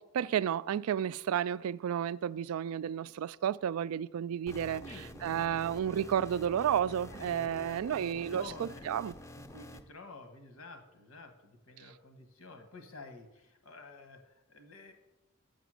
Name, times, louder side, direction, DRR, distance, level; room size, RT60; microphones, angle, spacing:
voice 1, 0.0-9.1, right 9 dB, 90° right, 0.3 m, -32 dB
sound 1, 4.5-9.8, left 1 dB, 15° left, 0.4 m, -48 dB
voice 2, 4.8-5.6 7.1-8.8 9.3-14.9, left 2 dB, 85° left, 1.4 m, -51 dB
7.2 x 6.9 x 6.2 m
head